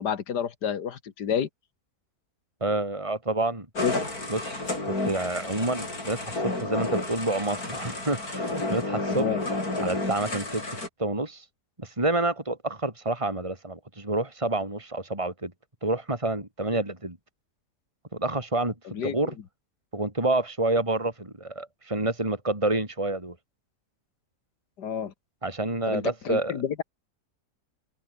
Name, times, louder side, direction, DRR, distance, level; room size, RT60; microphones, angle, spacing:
voice 1, 0.0-1.5 3.8-3.9 9.1-9.4 18.9-19.3 24.8-25.1 25.9-26.8, left 8 dB, 90° left, 2.1 m, -29 dB
voice 2, 2.6-3.7 4.3-9.3 9.8-10.6 11.0-11.4 11.8-15.5 15.8-17.2 18.1-18.7 19.0-19.3 19.9-23.4 25.4-26.6, right 2 dB, 20° right, 4.0 m, -28 dB
sound 1, 3.8-10.9, left 2 dB, 65° left, 6.8 m, -31 dB
omnidirectional pair, 1.7 m